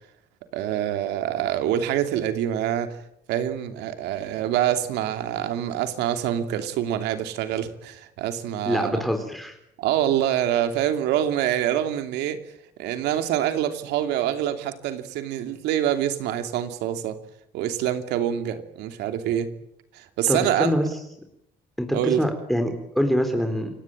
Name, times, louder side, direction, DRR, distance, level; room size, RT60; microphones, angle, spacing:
voice 1, 0.5-3.0 3.3-9.0 9.8-12.4 12.8-17.2 17.5-19.5 19.9-20.7 21.9-22.2, right 11 dB, 90° right, 8 dB, 2.9 m, -25 dB
voice 2, 8.7-9.6 20.3-20.9 21.8-23.7, equal, ahead, 5 dB, 3.9 m, -24 dB
29.0 x 18.0 x 9.0 m, 0.78 s
cardioid pair, 110°, 17 cm